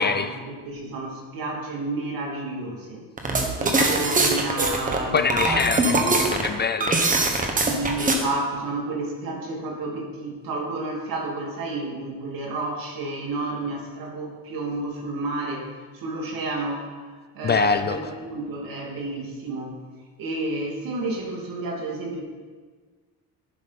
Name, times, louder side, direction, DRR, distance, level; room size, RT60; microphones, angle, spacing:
voice 1, 0.0-3.0 3.4-6.0 7.6-15.7 15.9-19.8 20.2-22.2, right 2 dB, 70° right, -1 dB, 2.8 m, -31 dB
sound 1, 3.2-8.2, right 2 dB, 20° right, 1.3 m, -22 dB
voice 2, 5.1-7.1 17.4-18.0, left 5 dB, 30° left, 10 dB, 0.4 m, -24 dB
11.0 x 11.0 x 4.2 m, 1.5 s
cardioid pair, 155°, 36 cm